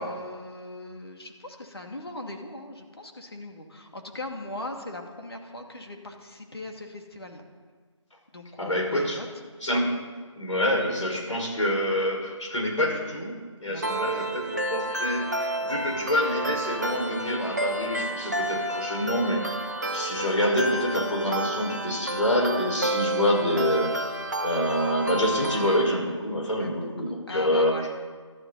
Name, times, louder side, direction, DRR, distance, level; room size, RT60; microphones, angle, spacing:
voice 1, 0.0-7.4 8.3-9.3 13.7-14.0 26.6-27.9, left 1 dB, 50° left, 3 dB, 2.6 m, -39 dB
voice 2, 8.6-9.2 9.6-10.0 10.4-19.6 19.9-24.2 24.4-27.9, left 1 dB, 75° left, -1 dB, 5.8 m, -26 dB
sound 1, 13.8-25.8, right 1 dB, 35° right, 1.3 m, -30 dB
21.0 x 14.0 x 4.3 m, 1.5 s
figure-of-eight pair, 180°, 16 cm